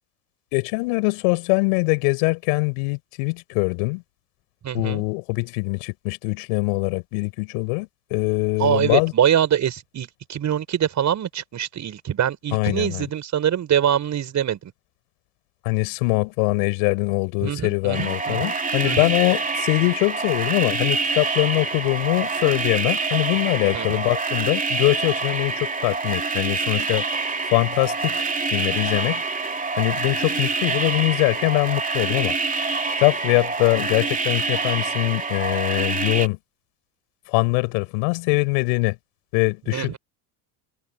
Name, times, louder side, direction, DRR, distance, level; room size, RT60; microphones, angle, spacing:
voice 1, 0.5-4.0 4.7-9.1 12.5-13.1 15.6-27.1 27.5-28.2 28.5-29.2 29.8-32.3 32.6-32.7 33.0-36.4 37.3-38.9 39.3-40.0, left 33 dB, 80° left, 6.1 m, -23 dB
voice 2, 4.6-5.0 8.6-14.7 17.4-18.5 18.8-19.1 23.7-24.0 39.7-40.0, right 9 dB, 40° right, 6.9 m, -24 dB
sound 1, 17.9-36.3, right 4 dB, 20° right, 3.0 m, -26 dB
supercardioid pair, 105°, 42 cm